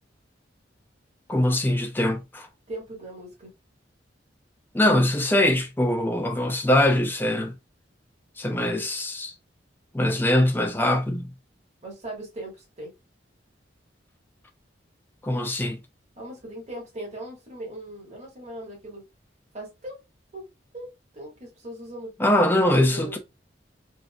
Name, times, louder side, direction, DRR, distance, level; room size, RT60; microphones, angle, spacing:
voice 1, 1.3-2.5 4.7-7.5 8.4-9.3 9.9-11.3 15.2-15.8 22.2-23.2, left 1 dB, 10° left, 0.5 m, -22 dB
voice 2, 2.7-3.5 11.8-12.9 16.2-19.0 19.5-20.0 20.3-20.4 20.7-22.1 22.5-23.2, right 1 dB, 35° right, 1.6 m, -39 dB
3.6 x 2.6 x 2.3 m
head